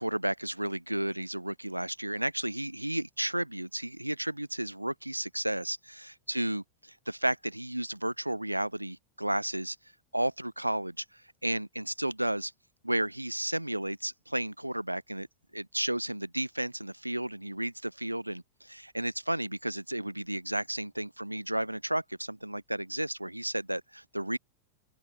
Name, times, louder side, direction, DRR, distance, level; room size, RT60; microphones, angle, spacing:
voice 1, 0.0-9.8 10.1-12.5 12.8-15.3 15.5-24.4, right 1 dB, 85° right, 0.7 m, -33 dB
open air
figure-of-eight pair, 90°, 0 cm